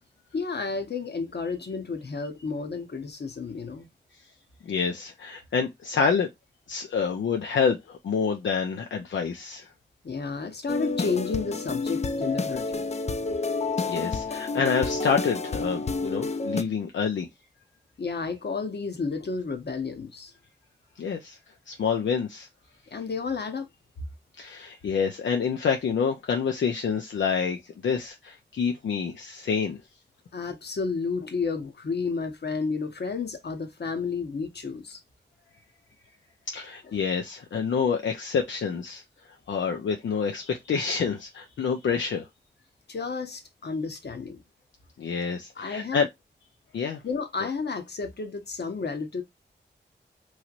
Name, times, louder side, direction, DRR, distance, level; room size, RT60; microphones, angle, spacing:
voice 1, 0.3-3.9 10.0-12.9 18.0-20.3 22.9-23.7 30.3-35.0 36.9-37.0 42.9-44.4 45.6-46.1 47.0-49.2, left 4 dB, 60° left, 0.9 m, -31 dB
voice 2, 4.6-6.3 6.7-9.7 13.9-17.3 21.0-21.4 21.7-22.5 24.4-27.6 27.8-29.8 36.5-39.0 39.5-42.3 45.0-46.1 46.7-47.0, left 6 dB, 85° left, 0.5 m, -27 dB
sound 1, 10.7-16.6, left 3 dB, 35° left, 0.5 m, -29 dB
3.1 x 2.9 x 2.4 m
cardioid pair, 40°, 19 cm